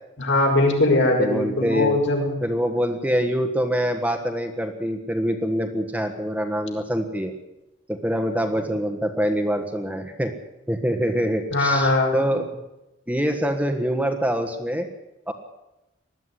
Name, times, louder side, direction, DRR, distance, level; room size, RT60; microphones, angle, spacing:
voice 1, 0.2-2.3 11.5-12.1, left 2 dB, 65° left, 1 dB, 5.8 m, -20 dB
voice 2, 1.2-2.0 2.4-7.3 7.9-10.3 10.7-12.6 13.1-14.9 15.3-15.4, equal, 5° right, 6 dB, 1.4 m, -25 dB
20.5 x 13.5 x 9.9 m, 0.97 s
head